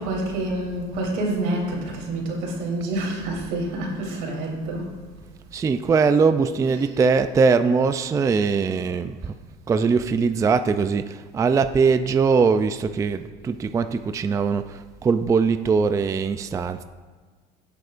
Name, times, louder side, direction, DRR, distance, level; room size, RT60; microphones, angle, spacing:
voice 1, 0.0-4.9 6.6-6.7, right 1 dB, 85° right, -1 dB, 3.1 m, -27 dB
voice 2, 5.5-9.3 9.7-16.8, right 5 dB, 15° right, 10 dB, 0.3 m, -21 dB
17.0 x 8.1 x 2.5 m, 1.4 s
cardioid pair, 125°, 18 cm